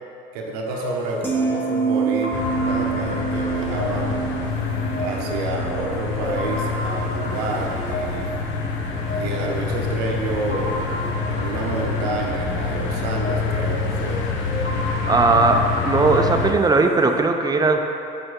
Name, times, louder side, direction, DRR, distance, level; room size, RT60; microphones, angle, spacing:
voice 1, 0.3-2.4 2.7-4.3 5.0-8.3 9.2-10.8 11.3-14.2, right 3 dB, 90° right, 0 dB, 0.7 m, -29 dB
sound 1, 0.7-17.2, left 1 dB, 35° left, 1.3 m, -33 dB
Metal Bowl, 1.2-7.5 7.8-8.2, right 5 dB, 10° left, 1.5 m, -27 dB
sound 2, 2.3-16.5, left 5 dB, 70° left, 0.7 m, -27 dB
voice 2, 15.1-17.8, right 3 dB, 20° right, 4 dB, 0.6 m, -18 dB
6.9 x 5.2 x 3.7 m, 2.9 s
supercardioid pair, 85°, 20 cm